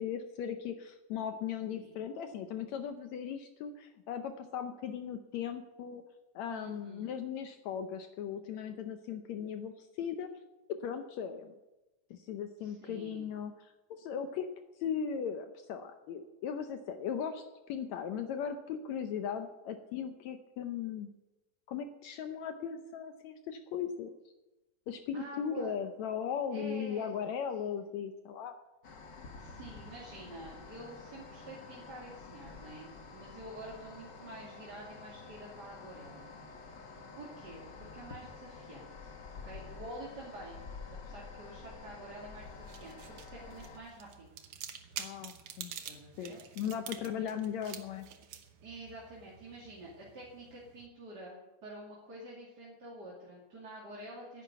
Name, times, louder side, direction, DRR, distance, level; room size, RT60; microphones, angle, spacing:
voice 1, 0.0-6.0 6.4-10.3 10.8-11.5 12.1-14.5 14.8-17.4 17.7-21.1 21.7-24.1 24.9-28.5 45.0-45.7 46.2-48.1, left 8 dB, 75° left, 7 dB, 1.7 m, -38 dB
voice 2, 6.5-7.2 12.6-13.3 25.1-25.7 26.5-27.1 29.3-36.3 37.2-39.2 39.4-40.6 41.0-44.3 45.8-46.4 47.2-47.4 48.6-54.4, right 1 dB, 30° right, -5 dB, 2.7 m, -48 dB
sound 1, 28.8-43.8, left 4 dB, 50° left, 1.3 m, -49 dB
sound 2, 42.4-50.9, right 9 dB, 75° right, 1.3 m, -48 dB
10.5 x 10.0 x 9.2 m, 1.1 s
omnidirectional pair, 3.9 m